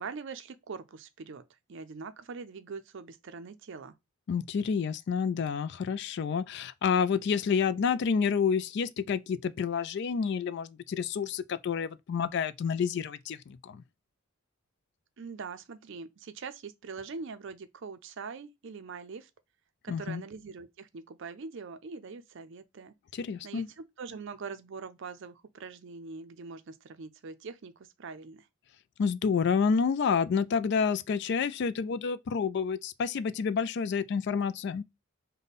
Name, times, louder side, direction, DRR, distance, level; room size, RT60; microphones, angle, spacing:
voice 1, 0.0-1.4 1.7-4.0 15.2-19.3 19.8-22.9 23.4-28.5, right 5 dB, 60° right, 0.5 m, -43 dB
voice 2, 4.3-13.8 19.9-20.2 23.1-23.7 29.0-34.8, left 6 dB, 55° left, 0.3 m, -29 dB
5.2 x 2.2 x 4.0 m
head